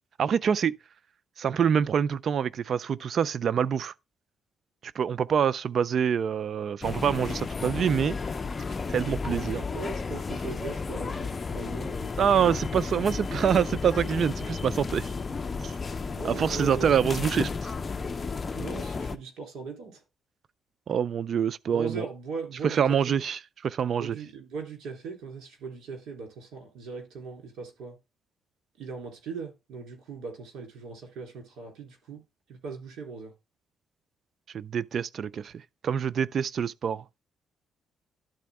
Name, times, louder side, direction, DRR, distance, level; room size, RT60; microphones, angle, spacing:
voice 1, 0.2-0.8 1.4-3.9 4.8-8.2 8.9-9.6 12.2-15.1 15.6-15.7 16.2-17.7 20.9-22.0 22.6-24.2 34.5-35.5 35.8-37.0, right 8 dB, 55° right, 0.4 m, -26 dB
sound 1, 6.8-19.2, left 4 dB, 30° left, 0.6 m, -33 dB
voice 2, 9.7-12.5 16.1-17.0 18.5-20.0 21.7-23.2 23.9-28.0 28.8-32.2 32.5-33.3, right 4 dB, 75° right, 3.2 m, -39 dB
12.0 x 4.2 x 3.5 m
cardioid pair, 90°, 0 cm